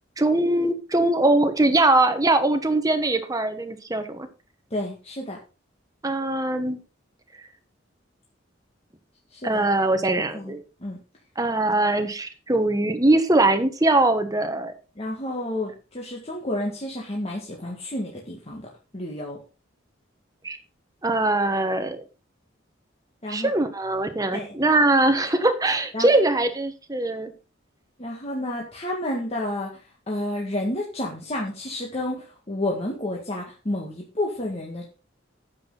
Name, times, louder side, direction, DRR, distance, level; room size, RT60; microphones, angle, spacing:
voice 1, 0.2-4.3 6.0-6.8 9.4-10.6 11.4-14.7 20.4-20.6 21.0-22.0 23.3-27.3, right 2 dB, 20° right, 8 dB, 1.2 m, -22 dB
voice 2, 4.7-5.4 9.3-9.7 10.3-10.5 10.8-11.0 14.9-18.7 18.9-19.4 23.2-23.5 24.3-24.5 25.9-26.1 28.0-29.8 30.1-34.9, left 1 dB, 35° left, -2 dB, 1.8 m, -30 dB
9.6 x 7.8 x 4.0 m, 0.32 s
head